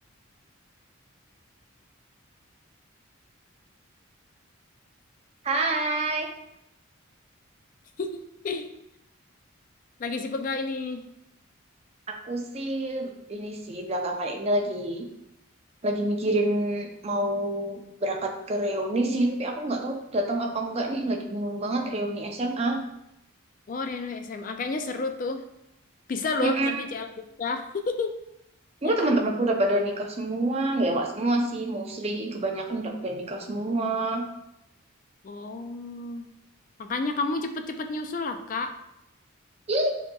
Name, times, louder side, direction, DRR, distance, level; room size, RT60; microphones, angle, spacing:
voice 1, 5.4-6.3 12.1-15.1 15.8-22.8 26.4-26.8 28.8-34.3 39.7-39.9, right 1 dB, 30° right, 2 dB, 0.5 m, -27 dB
voice 2, 8.0-8.7 10.0-11.0 23.7-25.4 26.1-28.1 28.8-29.2 35.2-36.3 36.8-38.7, left 3 dB, 40° left, 7 dB, 0.3 m, -31 dB
6.9 x 2.8 x 2.3 m, 0.84 s
head